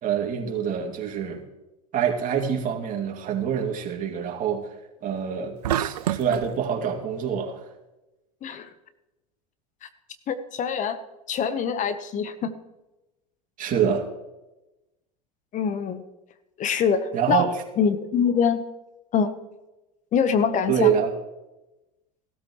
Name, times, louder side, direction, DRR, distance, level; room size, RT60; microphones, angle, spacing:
voice 1, 0.0-1.4 1.9-4.7 5.0-7.6 13.6-14.1 17.1-17.6 20.7-21.1, right 8 dB, 40° right, 2.5 m, -25 dB
sound 1, 5.6-6.5, right 12 dB, 85° right, 0.5 m, -26 dB
voice 2, 10.3-11.0 11.3-12.5 15.5-16.0 16.6-17.5 17.8-18.6 19.1-19.3 20.1-20.9, left 7 dB, 40° left, 1.1 m, -24 dB
16.0 x 13.0 x 3.1 m
hypercardioid pair, 85°, 20 cm